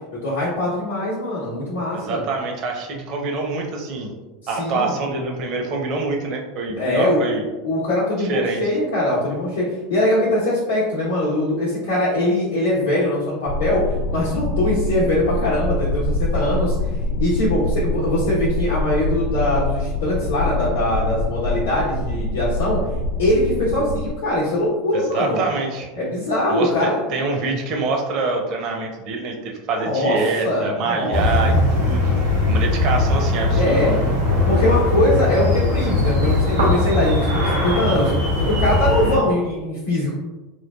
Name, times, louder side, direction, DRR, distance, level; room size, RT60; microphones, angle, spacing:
voice 1, 0.2-2.2 4.6-4.9 6.7-7.2 7.6-16.7 17.2-22.8 23.2-25.4 25.9-27.1 29.7-30.2 30.4-31.6 33.5-34.0 34.4-38.1 38.4-40.1, left 1 dB, 80° left, -9 dB, 0.7 m, -22 dB
voice 2, 1.9-4.1 4.5-7.4 8.2-8.6 24.9-25.9 26.5-32.2 32.5-33.9, right 3 dB, 50° right, 2 dB, 0.6 m, -25 dB
sound 1, 13.5-24.1, left 2 dB, 55° left, 0.3 m, -24 dB
sound 2, 31.1-39.2, left 2 dB, 85° right, 1.1 m, -20 dB
3.0 x 2.3 x 2.2 m, 1.2 s
hypercardioid pair, 85°, 0 cm